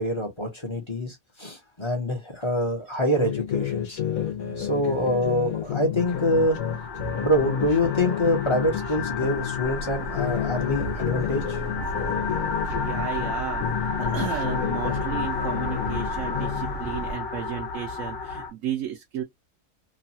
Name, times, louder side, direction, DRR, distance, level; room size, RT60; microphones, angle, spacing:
voice 1, 0.0-4.0 4.6-6.6 7.1-11.6, left 1 dB, 25° left, 0.8 m, -25 dB
sound 1, 3.2-9.6 10.0-13.3 13.6-16.7, left 10 dB, 80° left, 1.2 m, -30 dB
sound 2, 6.0-18.5, left 4 dB, 60° left, 1.1 m, -32 dB
Subway metro underground, 9.6-17.1, right 2 dB, 40° left, 1.3 m, -37 dB
voice 2, 11.9-12.3 12.7-19.2, right 10 dB, 75° right, 0.9 m, -34 dB
3.1 x 2.3 x 2.7 m
omnidirectional pair, 1.5 m